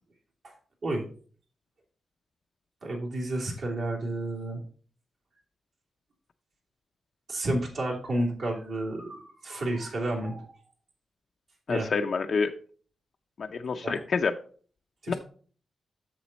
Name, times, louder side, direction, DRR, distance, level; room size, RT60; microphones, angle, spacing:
voice 1, 2.8-4.6 7.3-10.5 11.7-11.9 13.8-14.0 15.0-15.2, right 1 dB, 60° right, -2 dB, 2.8 m, -31 dB
voice 2, 11.7-12.5 13.4-14.3 15.1-15.2, left 5 dB, 50° left, 5 dB, 0.5 m, -27 dB
7.5 x 7.0 x 4.0 m, 0.43 s
wide cardioid pair, 140°, 0 cm